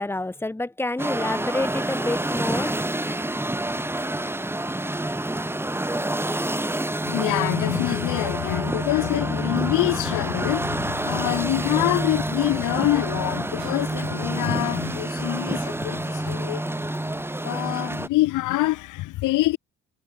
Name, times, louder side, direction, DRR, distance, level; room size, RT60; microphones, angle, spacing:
voice 1, 0.0-3.2, left 2 dB, 10° left, 1.2 m, -29 dB
sound 1, 1.0-18.1, right 1 dB, 10° right, 1.7 m, -28 dB
voice 2, 7.0-16.6 17.4-19.6, left 18 dB, 90° left, 1.0 m, -25 dB
sound 2, 13.5-14.1 14.5-16.2 16.9-17.0, right 10 dB, 65° right, 7.1 m, -51 dB
cardioid pair, 90°, 30 cm